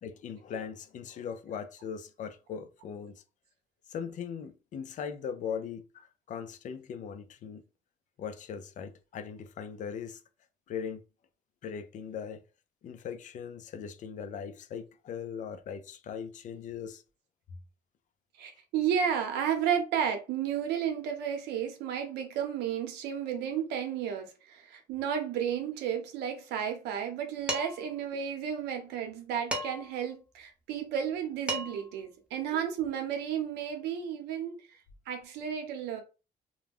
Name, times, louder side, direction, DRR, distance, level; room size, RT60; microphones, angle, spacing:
voice 1, 0.0-3.2 3.9-7.6 8.2-10.2 10.7-11.0 11.6-12.4 12.8-17.0, left 7 dB, 50° left, 0.4 m, -39 dB
voice 2, 18.4-34.6 35.1-36.0, right 8 dB, 85° right, 0.7 m, -32 dB
Dishes pots and pans, 27.5-27.9 29.5-30.0 31.1-31.2 31.5-31.9, right 2 dB, 5° right, 0.7 m, -34 dB
2.3 x 2.2 x 3.4 m
cardioid pair, 110°, 17 cm